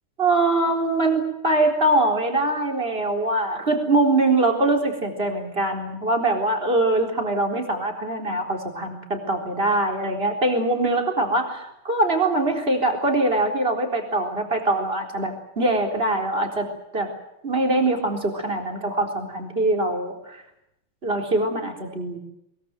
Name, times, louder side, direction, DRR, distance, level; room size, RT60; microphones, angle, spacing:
voice 1, 0.2-17.1 17.4-20.4 21.0-22.2, right 2 dB, 25° right, 2 dB, 4.2 m, -23 dB
22.5 x 22.5 x 7.7 m, 0.82 s
omnidirectional pair, 2.3 m